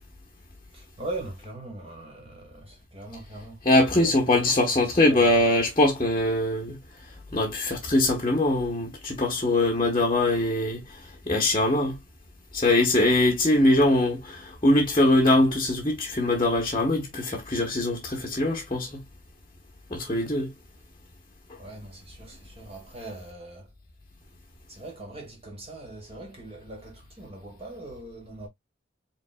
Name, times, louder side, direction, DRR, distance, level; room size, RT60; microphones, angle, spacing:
voice 1, 0.7-3.6 4.0-4.6 5.0-5.3 20.1-20.2 21.5-23.7 24.7-28.5, right 2 dB, 30° right, 1.8 m, -40 dB
voice 2, 3.6-6.8 7.3-12.0 12.5-19.0 19.9-20.5, left 1 dB, 25° left, 1.0 m, -22 dB
5.2 x 3.8 x 2.2 m
head